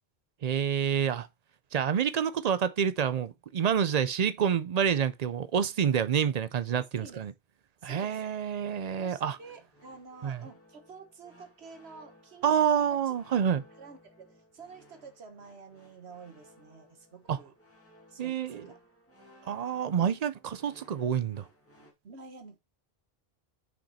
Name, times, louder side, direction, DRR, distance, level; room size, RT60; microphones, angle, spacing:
voice 1, 0.4-1.3 1.7-7.3 7.8-9.4 10.2-10.4 12.4-13.6 17.3-17.4 18.2-18.7 19.4-21.5, right 8 dB, 50° right, 0.5 m, -28 dB
voice 2, 6.7-7.3 7.8-8.2 9.0-13.1 13.8-17.5 18.1-18.8 20.0-20.2 20.6-20.7 22.0-22.6, right 4 dB, 80° right, 1.5 m, -50 dB
sound 1, 8.6-21.9, equal, 15° left, 1.9 m, -59 dB
6.0 x 5.1 x 4.1 m
omnidirectional pair, 1.1 m